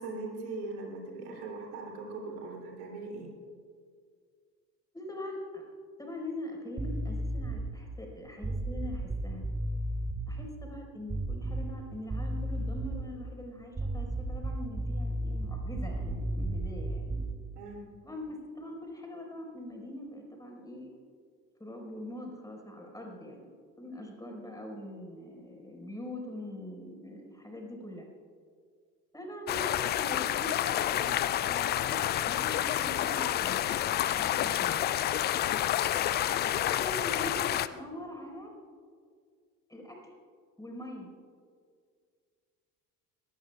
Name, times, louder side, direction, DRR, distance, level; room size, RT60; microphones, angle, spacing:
voice 1, 0.0-3.3 17.6-17.9, right 3 dB, 70° right, -1 dB, 3.2 m, -40 dB
voice 2, 4.9-5.6 6.0-9.4 10.3-17.2 18.0-20.9 21.6-23.4 23.8-28.1 29.1-30.6 30.9-32.0 32.3-34.8 36.4-38.5 39.7-40.1 40.6-41.1, left 1 dB, 5° left, 1 dB, 4.8 m, -43 dB
sound 1, 6.8-7.7 8.4-10.3 11.1-11.8 12.1-13.1 13.7-17.4, right 1 dB, 10° right, 0.9 m, -33 dB
sound 2, 29.5-37.7, left 12 dB, 25° left, 0.3 m, -29 dB
23.5 x 19.0 x 2.4 m, 2.1 s
figure-of-eight pair, 55°, 48 cm